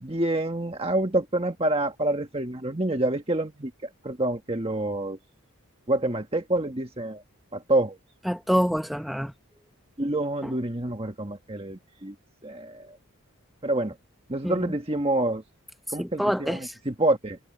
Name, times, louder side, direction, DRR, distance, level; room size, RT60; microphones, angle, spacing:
voice 1, 0.0-5.2 5.9-7.2 7.5-8.0 10.0-12.1 12.4-13.0 13.6-13.9 14.3-15.4 15.9-17.4, right 1 dB, 25° right, 1.6 m, -27 dB
voice 2, 8.3-9.3 14.4-14.7 16.0-16.7, equal, ahead, 0.8 m, -26 dB
head